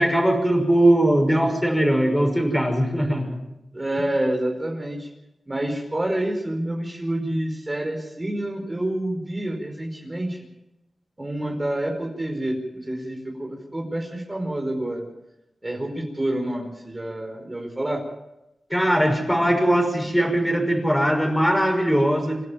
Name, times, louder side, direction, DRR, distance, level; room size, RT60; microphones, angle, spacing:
voice 1, 0.0-3.4 18.7-22.4, right 1 dB, 5° left, 3 dB, 5.9 m, -20 dB
voice 2, 3.7-5.1 5.5-10.4 11.2-15.1 15.6-18.0, right 1 dB, 25° right, 1 dB, 4.7 m, -28 dB
28.0 x 11.0 x 9.2 m, 0.93 s
cardioid pair, 60°, 0 cm